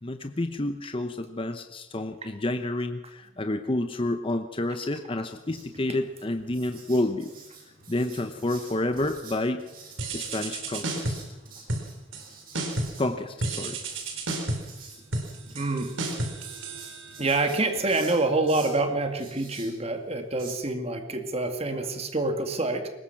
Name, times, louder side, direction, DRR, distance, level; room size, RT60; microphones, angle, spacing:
voice 1, 0.0-7.3 7.9-9.6 10.1-11.2 13.0-13.8, left 1 dB, 25° left, 8 dB, 0.9 m, -29 dB
Writing, 5.3-20.5, right 4 dB, 50° right, 6.6 m, -49 dB
sound 1, 10.0-11.3 11.7-12.3 12.5-13.1 13.4-17.4, right 2 dB, 80° right, 4.0 m, -32 dB
voice 2, 15.5-15.9 17.2-22.9, right 2 dB, 30° right, 5 dB, 2.3 m, -27 dB
22.5 x 20.0 x 6.0 m, 0.98 s
head